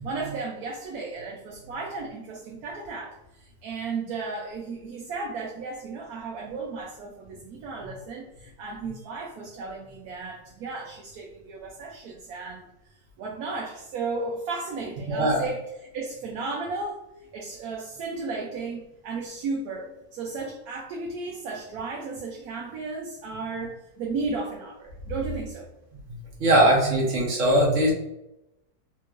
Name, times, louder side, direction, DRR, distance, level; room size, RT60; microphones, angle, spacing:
voice 1, 0.0-12.7 13.2-17.0 17.3-25.7, right 3 dB, 75° right, -1 dB, 1.0 m, -34 dB
voice 2, 15.1-15.4 26.1-27.9, right 1 dB, 55° right, -3 dB, 1.3 m, -21 dB
3.5 x 2.9 x 2.5 m, 0.88 s
omnidirectional pair, 1.7 m